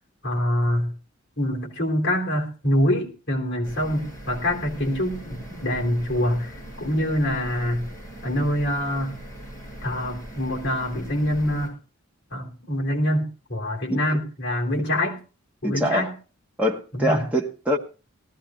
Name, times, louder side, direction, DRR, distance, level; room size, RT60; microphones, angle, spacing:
voice 1, 0.2-0.9 1.4-7.9 8.2-9.2 9.8-11.8 12.3-15.2 15.6-16.1 16.9-17.2, left 1 dB, 50° left, 1 dB, 3.5 m, -25 dB
sound 1, 3.6-11.7, right 1 dB, 15° left, 7.6 m, -40 dB
voice 2, 15.6-16.1 16.6-17.8, equal, 5° right, -1 dB, 1.3 m, -24 dB
19.0 x 14.5 x 2.4 m, 0.34 s
head